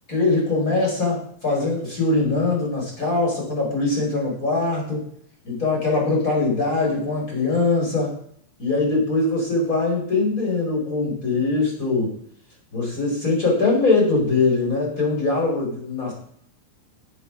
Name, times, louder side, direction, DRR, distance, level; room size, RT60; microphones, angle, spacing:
voice 1, 0.1-5.0 5.4-8.1 8.6-12.1 12.7-16.1, left 3 dB, 20° left, -2 dB, 5.3 m, -22 dB
11.0 x 9.4 x 6.2 m, 0.64 s
omnidirectional pair, 4.5 m